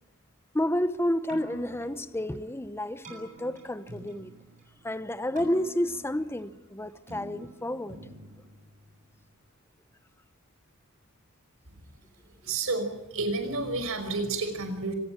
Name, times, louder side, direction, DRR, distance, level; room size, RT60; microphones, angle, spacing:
voice 1, 0.5-4.3 4.8-8.0 12.5-12.6, left 1 dB, 10° left, 0.9 m, -30 dB
Keyboard (musical), 1.1-9.3, right 1 dB, 35° right, 7.5 m, -48 dB
voice 2, 12.4-14.9, right 3 dB, 65° right, 5.5 m, -30 dB
25.5 x 19.5 x 8.9 m
head